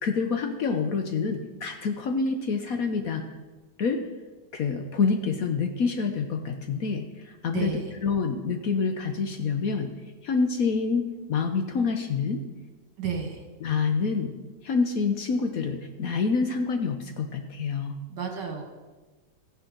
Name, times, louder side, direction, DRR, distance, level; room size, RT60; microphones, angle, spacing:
voice 1, 0.0-3.2 3.8-4.0 4.5-9.9 10.2-12.4 13.6-14.3 14.6-17.9, left 5 dB, 60° left, 5 dB, 1.1 m, -27 dB
voice 2, 7.5-7.9 13.0-13.4 18.1-18.6, right 6 dB, 70° right, 3 dB, 2.2 m, -32 dB
14.0 x 10.0 x 3.9 m, 1.3 s
omnidirectional pair, 2.0 m